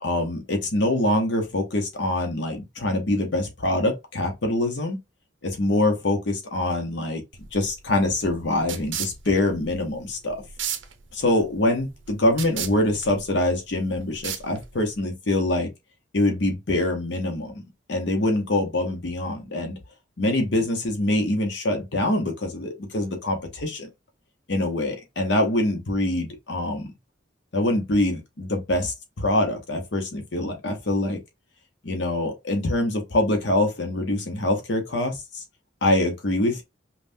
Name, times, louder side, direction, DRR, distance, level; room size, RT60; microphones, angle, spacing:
voice 1, 0.0-5.0 5.4-7.2 7.5-10.4 11.1-15.7 16.1-17.5 17.9-19.7 20.2-23.9 24.5-26.9 27.5-31.2 31.8-35.4 35.8-36.6, left 1 dB, 60° left, 0.9 m, -24 dB
sound 1, 7.3-15.0, right 9 dB, 70° right, 0.7 m, -36 dB
5.4 x 2.3 x 2.7 m
head